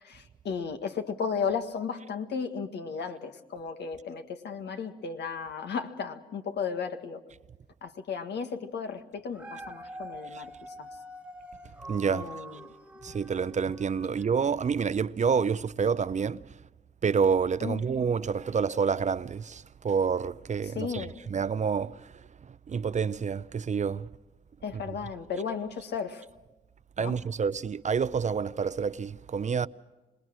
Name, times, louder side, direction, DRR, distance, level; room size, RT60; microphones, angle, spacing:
voice 1, 0.0-7.2 7.8-10.5 10.8-10.9 12.1-12.7 17.6-17.9 20.6-21.2 24.6-26.3 27.0-27.2, left 6 dB, 75° left, 1.8 m, -34 dB
Dog, 9.1-14.5 15.0-15.1, right 1 dB, 5° right, 1.4 m, -45 dB
voice 2, 11.9-12.3 13.0-16.4 17.0-22.0 22.7-24.1 27.0-29.7, right 6 dB, 40° right, 0.6 m, -28 dB
26.5 x 20.0 x 6.3 m
cardioid pair, 70°, 18 cm